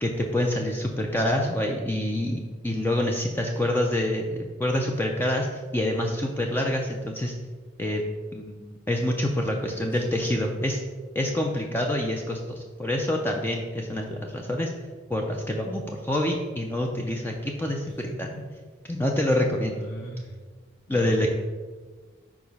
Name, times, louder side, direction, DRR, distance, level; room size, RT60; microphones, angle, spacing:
voice 1, 0.0-7.3 7.8-8.0 8.3-10.8 11.1-14.7 15.1-17.9 18.2-18.3 18.9-19.8 20.9-21.3, left 1 dB, 10° left, 1 dB, 0.5 m, -26 dB
voice 2, 9.4-10.0 17.8-18.5 19.6-20.4 20.9-21.3, equal, 70° left, -3 dB, 2.0 m, -40 dB
4.9 x 4.9 x 5.3 m, 1.4 s
head